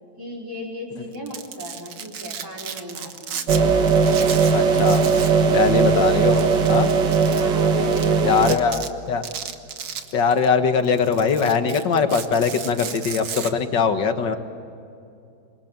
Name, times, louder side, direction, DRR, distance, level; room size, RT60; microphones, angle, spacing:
voice 1, 0.2-3.5 7.3-8.8, equal, 10° right, -3 dB, 4.7 m, -36 dB
Domestic sounds home sounds, 1.1-3.6 3.9-5.4 5.7-5.8 6.3-7.4 7.9-8.0 8.4-8.9 9.2-10.5 10.8-13.5, right 7 dB, 85° right, 2.2 m, -34 dB
sound 1, 3.5-8.6, right 5 dB, 60° right, 2.0 m, -18 dB
voice 2, 4.5-5.0 5.5-6.9 8.2-9.3 10.1-14.4, left 5 dB, 60° left, 8 dB, 2.2 m, -21 dB
27.5 x 24.0 x 8.9 m, 2.6 s
omnidirectional pair, 2.2 m